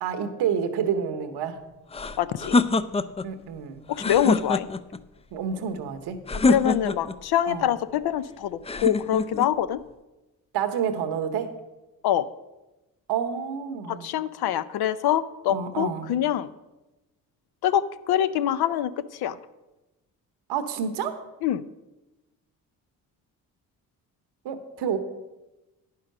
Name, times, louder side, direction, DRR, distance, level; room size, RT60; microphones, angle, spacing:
voice 1, 0.0-1.6 3.2-3.8 5.3-6.2 7.4-7.7 10.5-11.6 13.1-14.1 15.5-16.1 20.5-21.2 24.4-25.0, right 7 dB, 85° right, 8 dB, 1.0 m, -29 dB
sound 1, 1.9-3.3 3.9-5.0 6.3-7.2 8.6-9.5, left 3 dB, 15° left, 0.4 m, -25 dB
voice 2, 2.2-2.6 3.9-4.7 6.4-9.8 12.0-12.3 13.9-16.5 17.6-19.4 21.4-21.6, left 10 dB, 70° left, 15 dB, 0.6 m, -25 dB
9.6 x 5.7 x 6.4 m, 1.0 s
supercardioid pair, 60°, 39 cm